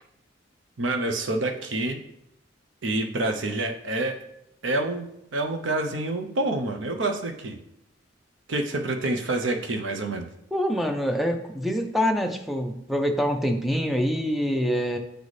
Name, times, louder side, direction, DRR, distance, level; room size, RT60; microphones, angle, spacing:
voice 1, 0.8-2.0 2.8-4.2 4.6-7.6 8.5-10.3, right 2 dB, 85° right, 4 dB, 0.7 m, -27 dB
voice 2, 10.5-15.0, equal, ahead, 4 dB, 0.5 m, -25 dB
8.1 x 4.1 x 3.2 m, 0.80 s
head